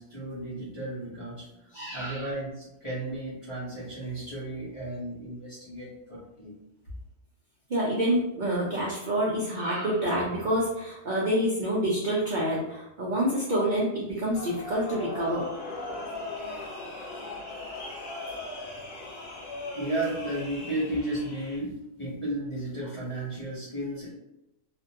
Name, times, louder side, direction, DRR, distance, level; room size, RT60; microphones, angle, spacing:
voice 1, 0.0-1.5 1.7-6.5 19.8-24.1, right 1 dB, 35° left, -10 dB, 0.5 m, -34 dB
voice 2, 1.7-2.3 7.7-15.5 18.4-18.7, equal, 60° right, -6 dB, 0.5 m, -27 dB
sound 1, 14.3-21.6, left 2 dB, 55° left, 0.9 m, -39 dB
2.5 x 2.1 x 2.7 m, 0.88 s
omnidirectional pair, 1.4 m